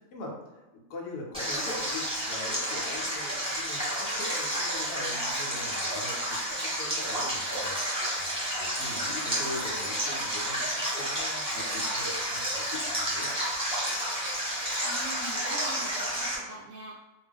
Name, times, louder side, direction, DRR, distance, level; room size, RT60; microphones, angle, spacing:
voice 1, 0.1-13.3, left 2 dB, 85° left, -1 dB, 1.1 m, -42 dB
Stream, 1.3-16.4, equal, 5° right, 0.8 m, -31 dB
voice 2, 14.8-17.0, right 2 dB, 70° right, -3 dB, 0.9 m, -42 dB
2.5 x 2.3 x 3.4 m, 1.1 s
omnidirectional pair, 1.6 m